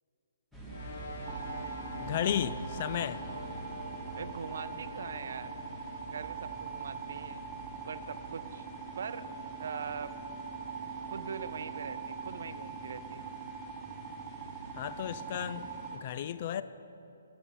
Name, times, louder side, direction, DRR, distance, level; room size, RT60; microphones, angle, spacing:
sound 1, 0.5-16.0, right 1 dB, 5° left, 1.1 m, -48 dB
sound 2, 0.7-13.4, left 1 dB, 55° left, 1.3 m, -50 dB
sound 3, 1.3-16.0, right 6 dB, 20° right, 0.6 m, -43 dB
voice 1, 2.0-3.2 14.8-16.6, left 9 dB, 40° left, 14 dB, 0.3 m, -34 dB
voice 2, 4.2-5.5 6.1-7.4 7.8-8.7 9.0-9.2 9.6-10.1 11.1-13.2, right 6 dB, 65° right, 13 dB, 0.4 m, -41 dB
10.5 x 6.1 x 7.1 m, 2.8 s
hypercardioid pair, 160°, 0 cm